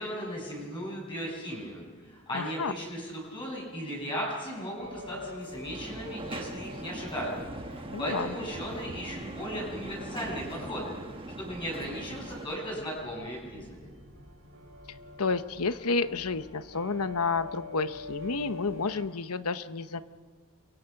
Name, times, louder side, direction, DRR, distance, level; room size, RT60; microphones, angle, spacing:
voice 1, 0.0-13.9, equal, 20° left, -4 dB, 7.3 m, -37 dB
voice 2, 2.3-2.7 7.9-8.3 15.2-20.0, left 4 dB, 85° left, 11 dB, 1.0 m, -30 dB
sound 1, 4.8-19.0, left 2 dB, 65° right, 5.2 m, -46 dB
sound 2, 5.7-12.5, right 2 dB, 25° right, 1.3 m, -41 dB
29.5 x 23.5 x 5.9 m, 1.5 s
head